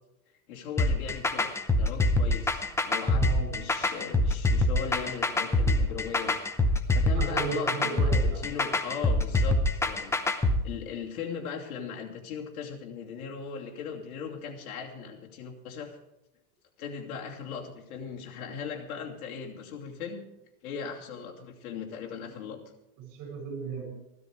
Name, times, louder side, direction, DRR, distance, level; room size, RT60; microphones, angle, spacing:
voice 1, 0.5-1.5 1.8-6.4 6.9-10.4 10.6-16.0 16.8-20.2 20.6-22.6, left 6 dB, 70° left, 1 dB, 2.8 m, -38 dB
sound 1, 0.8-10.6, left 2 dB, 5° left, 0.6 m, -25 dB
voice 2, 3.1-3.6 7.1-8.5 23.0-23.8, right 5 dB, 45° right, 3 dB, 6.6 m, -35 dB
15.0 x 13.0 x 4.9 m, 0.89 s
supercardioid pair, 135°, 45 cm